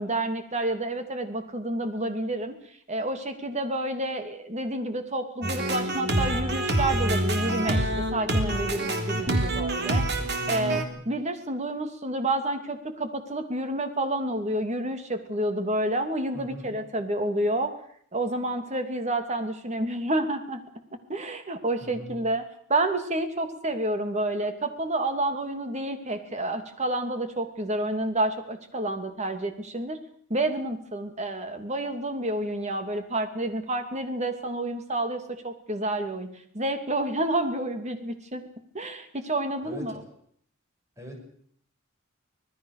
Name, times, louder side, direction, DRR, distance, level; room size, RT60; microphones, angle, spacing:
voice 1, 0.0-2.5 2.9-17.7 18.1-20.6 21.1-22.4 22.7-30.0 30.3-38.4 38.7-39.9, right 1 dB, 35° right, 7 dB, 2.7 m, -29 dB
sound 1, 5.4-10.8, right 1 dB, 55° right, 3.5 m, -26 dB
voice 2, 10.0-11.0 16.3-16.8 21.8-22.2 39.6-40.1 41.0-41.2, left 1 dB, 15° right, 2 dB, 7.4 m, -43 dB
25.5 x 19.5 x 6.7 m, 0.63 s
head